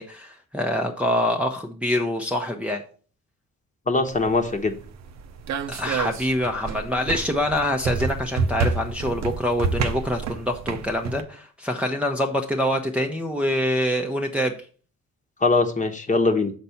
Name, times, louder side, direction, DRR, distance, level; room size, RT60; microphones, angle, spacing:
voice 1, 0.0-2.8 5.7-14.5, left 1 dB, 5° right, 1 dB, 0.8 m, -25 dB
voice 2, 3.9-4.7 15.4-16.5, left 3 dB, 25° left, 5 dB, 1.1 m, -21 dB
sound 1, 4.1-11.2, right 4 dB, 65° right, 0.8 m, -29 dB
6.7 x 4.1 x 5.7 m, 0.41 s
cardioid pair, 90°, 30 cm